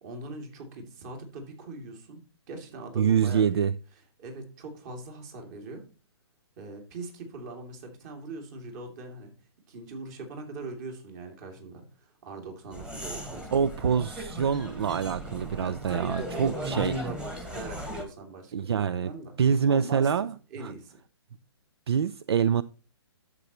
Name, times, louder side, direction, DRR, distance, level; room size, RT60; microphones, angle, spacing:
voice 1, 0.0-2.2 2.5-3.6 4.2-5.8 6.6-9.3 9.7-13.6 15.6-19.3 19.7-20.3 20.5-21.0, right 3 dB, 40° right, 4 dB, 2.7 m, -41 dB
voice 2, 3.0-3.7 13.5-16.9 18.5-19.1 19.4-20.3 20.6-20.7 21.9-22.6, right 7 dB, 70° right, 17 dB, 0.4 m, -25 dB
sound 1, 12.7-18.0, equal, 5° right, 1.4 m, -37 dB
11.5 x 7.4 x 3.0 m, 0.34 s
hypercardioid pair, 130°, 14 cm